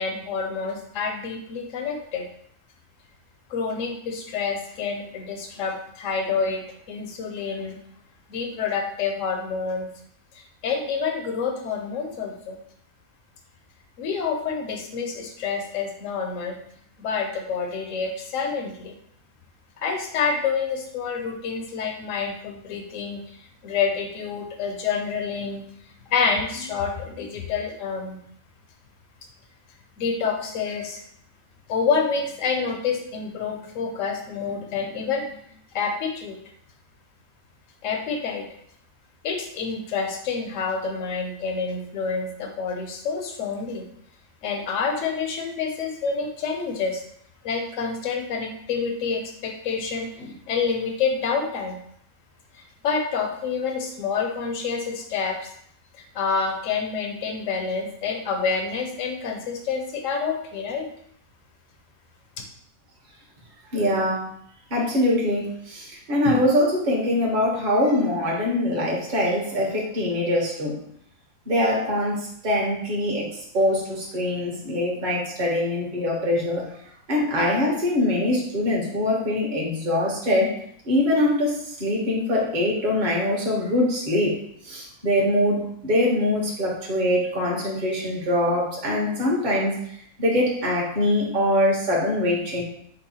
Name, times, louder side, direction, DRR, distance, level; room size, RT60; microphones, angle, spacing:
voice 1, 0.0-2.2 3.5-6.6 6.9-7.8 8.3-9.9 10.4-12.6 14.0-16.5 17.0-18.9 19.8-23.2 23.6-25.6 26.1-28.2 30.0-31.0 31.7-35.4 35.7-36.4 37.8-38.4 39.2-43.8 44.4-47.0 47.4-51.8 52.5-55.5 56.1-60.9, left 5 dB, 65° left, 3 dB, 1.1 m, -28 dB
voice 2, 63.7-64.3 64.7-70.8 71.5-73.3 73.5-76.6 77.1-80.5 80.8-84.4 84.6-89.8 90.2-92.6, left 1 dB, 35° right, -3 dB, 1.1 m, -23 dB
5.4 x 2.2 x 4.2 m, 0.69 s
omnidirectional pair, 1.5 m